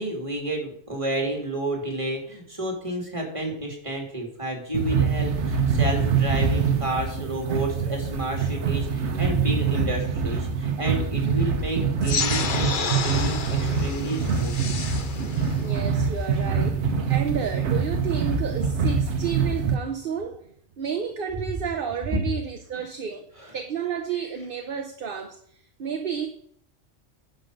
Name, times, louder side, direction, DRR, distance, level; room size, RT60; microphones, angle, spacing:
voice 1, 0.0-14.6 23.4-23.5, right 1 dB, 25° right, 1 dB, 2.8 m, -31 dB
sound 1, 4.7-19.7, right 5 dB, 75° right, 1.3 m, -25 dB
sound 2, 12.0-17.0, left 5 dB, 50° left, 1.0 m, -31 dB
voice 2, 15.6-20.4 20.8-23.2 23.5-26.3, right 7 dB, 55° right, 6 dB, 1.0 m, -31 dB
10.0 x 5.3 x 6.5 m, 0.62 s
omnidirectional pair, 1.2 m